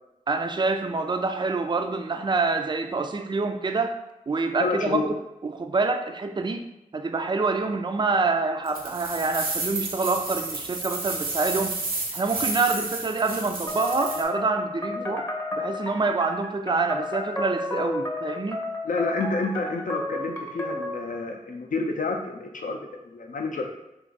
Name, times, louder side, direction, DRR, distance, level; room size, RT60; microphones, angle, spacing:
voice 1, 0.3-4.0 4.3-5.0 5.4-6.7 6.9-11.8 12.1-18.6, right 3 dB, 30° right, 6 dB, 0.4 m, -26 dB
voice 2, 4.6-5.1 15.0-15.2 18.8-22.8 23.0-23.7, left 3 dB, 65° left, 3 dB, 0.5 m, -29 dB
sound 1, 8.7-14.2, right 3 dB, 80° right, 0.6 m, -31 dB
sound 2, 13.7-21.1, left 1 dB, 20° left, 0.7 m, -32 dB
2.5 x 2.4 x 3.8 m, 0.92 s
cardioid pair, 55°, 15 cm